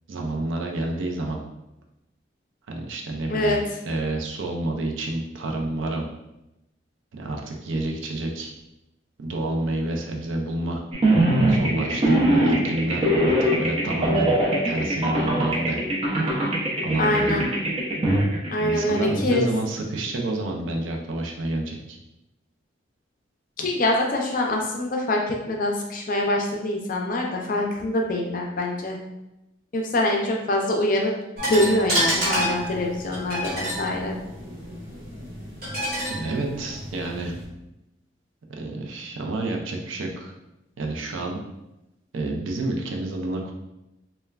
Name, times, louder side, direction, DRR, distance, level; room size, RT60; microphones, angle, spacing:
voice 1, 0.1-1.4 2.7-6.1 7.1-8.5 9.2-10.8 11.5-13.3 13.6-14.3 14.6-15.8 16.8-17.4 18.6-22.0 36.1-37.3 38.6-40.3 40.8-41.4 42.1-43.5, right 2 dB, 85° right, 1 dB, 0.5 m, -29 dB
sound 1, 10.9-19.3, right 1 dB, 30° right, 0.4 m, -22 dB
voice 2, 17.0-17.5 18.5-19.5 23.6-29.0 29.7-31.1 31.5-34.2, left 1 dB, 45° left, 0 dB, 0.4 m, -24 dB
sound 2, 31.4-37.4, equal, 50° right, 1.1 m, -29 dB
3.2 x 2.2 x 2.3 m, 0.92 s
head